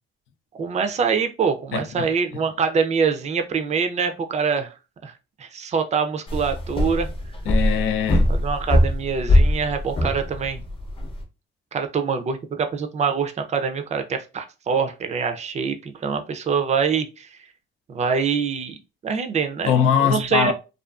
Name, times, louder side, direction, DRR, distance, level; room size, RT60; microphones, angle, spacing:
voice 1, 0.6-4.7 5.0-5.1 5.4-7.1 8.3-10.6 11.7-17.3 17.9-18.8 19.0-19.7 20.0-20.5, right 6 dB, 35° right, 0.5 m, -24 dB
voice 2, 1.7-2.1 7.5-8.3 19.7-20.5, left 8 dB, 85° left, 0.4 m, -21 dB
sound 1, 6.3-11.2, left 1 dB, 25° left, 0.6 m, -22 dB
2.4 x 2.3 x 2.3 m
cardioid pair, 90°, 20 cm